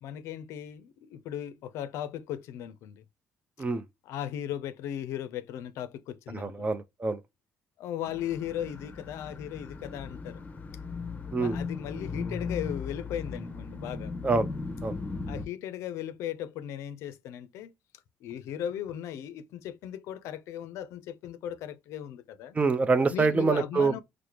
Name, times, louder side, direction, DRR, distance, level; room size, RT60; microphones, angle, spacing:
voice 1, 0.0-3.0 4.1-6.7 7.8-10.4 11.3-14.1 15.3-17.7 18.2-22.6 23.1-24.0, left 10 dB, 80° left, 0.4 m, -37 dB
voice 2, 6.3-7.2 11.3-11.6 14.2-14.5 14.8-15.0 22.5-24.0, right 4 dB, 30° right, 0.6 m, -26 dB
sound 1, 8.0-15.5, left 4 dB, 35° left, 0.7 m, -37 dB
4.7 x 2.1 x 2.9 m
supercardioid pair, 75°, 5 cm